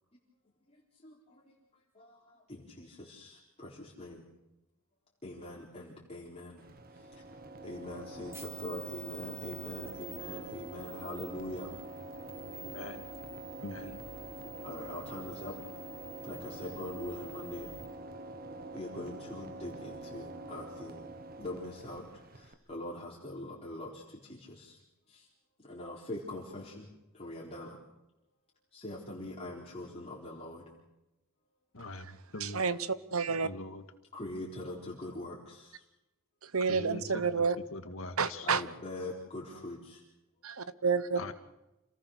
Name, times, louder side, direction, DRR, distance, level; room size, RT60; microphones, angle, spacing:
voice 1, 2.5-4.2 5.2-6.6 7.6-11.7 13.8-14.0 14.6-15.5 16.2-17.7 18.7-21.1 21.4-22.0 22.3-24.0 24.3-24.8 25.1-25.2 25.7-26.9 27.1-27.8 28.7-30.6 34.1-35.8 38.4-40.0, left 1 dB, 30° left, -5 dB, 4.1 m, -42 dB
sound 1, 6.6-22.5, right 2 dB, 45° right, 1.5 m, -45 dB
sound 2, 8.3-17.8, right 5 dB, 10° right, 2.1 m, -51 dB
voice 2, 12.5-13.1 13.6-14.0 31.7-32.6 33.4-33.8 36.7-37.4 37.7-38.5 41.2-41.3, left 2 dB, 65° left, 7 dB, 2.0 m, -42 dB
voice 3, 31.9-33.5 36.4-37.6 38.2-38.6 40.4-41.2, right 5 dB, 75° right, 14 dB, 1.1 m, -30 dB
28.0 x 19.0 x 6.6 m, 0.95 s
head